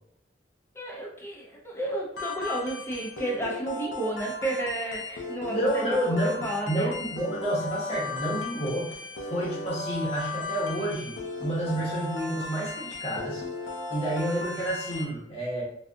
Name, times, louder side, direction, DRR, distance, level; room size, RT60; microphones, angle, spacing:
voice 1, 0.7-6.9, right 1 dB, 15° left, -2 dB, 0.5 m, -32 dB
sound 1, 2.1-15.0, left 3 dB, 85° left, 0.7 m, -36 dB
voice 2, 5.5-13.4 13.9-15.6, right 1 dB, 35° left, -6 dB, 1.0 m, -29 dB
3.5 x 2.4 x 2.5 m, 0.73 s
head